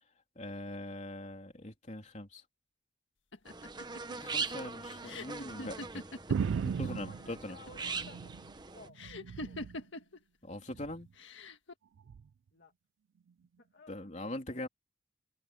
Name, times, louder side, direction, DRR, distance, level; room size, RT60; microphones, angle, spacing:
voice 1, 0.3-2.4 4.2-6.1 6.8-7.6 10.4-11.1 13.9-14.7, left 1 dB, 35° left, 3.5 m, -42 dB
sound 1, 3.3-6.9 7.2-7.9 9.0-10.2 11.2-11.7, left 2 dB, 75° left, 1.7 m, -44 dB
sound 2, 3.5-8.9, right 4 dB, 20° right, 1.0 m, -41 dB
sound 3, 6.3-8.5 8.9-9.8 10.7-11.1 12.1-12.2, right 6 dB, 80° right, 0.3 m, -36 dB
voice 2, 6.6-8.4 8.7-9.0 9.3-9.7 12.5-12.7 13.6-14.7, left 3 dB, 55° left, 2.5 m, -56 dB
head